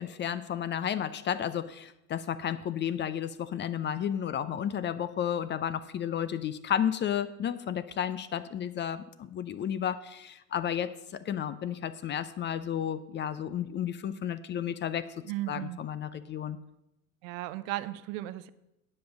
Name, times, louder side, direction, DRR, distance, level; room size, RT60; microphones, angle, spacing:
voice 1, 0.0-15.1 15.5-16.6, left 9 dB, 25° left, 14 dB, 0.5 m, -32 dB
voice 2, 15.2-15.8 17.2-18.5, right 16 dB, 65° right, 15 dB, 0.7 m, -35 dB
10.0 x 5.4 x 7.0 m, 0.89 s
hypercardioid pair, 90°, 42 cm